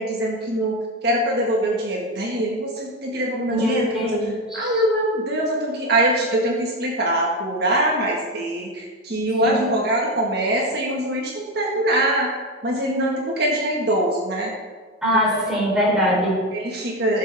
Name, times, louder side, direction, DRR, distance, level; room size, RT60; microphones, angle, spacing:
voice 1, 0.0-4.2 4.5-12.3 12.6-14.5 15.3-15.4 16.5-17.2, right 1 dB, 60° right, -2 dB, 1.8 m, -23 dB
voice 2, 3.5-4.7 9.4-9.7 15.0-16.4, equal, 5° right, -6 dB, 3.7 m, -22 dB
16.5 x 7.2 x 3.6 m, 1.4 s
head